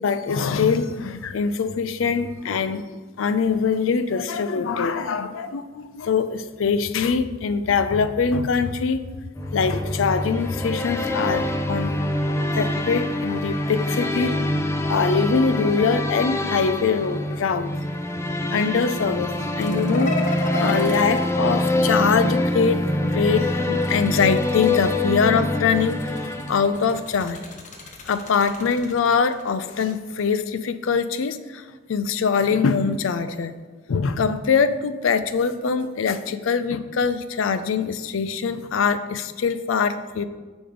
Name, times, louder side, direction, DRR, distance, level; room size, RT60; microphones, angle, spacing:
voice 1, 0.0-9.0 9.5-12.0 12.6-14.4 14.9-17.7 18.5-27.4 28.1-33.5 33.9-40.2, left 5 dB, 85° left, 12 dB, 0.4 m, -23 dB
sound 1, 9.4-27.1, left 1 dB, 15° left, 0.4 m, -25 dB
sound 2, 19.6-22.4 23.6-25.2 25.7-30.0, left 2 dB, 40° left, 0.8 m, -35 dB
6.1 x 5.0 x 5.0 m, 1.4 s
head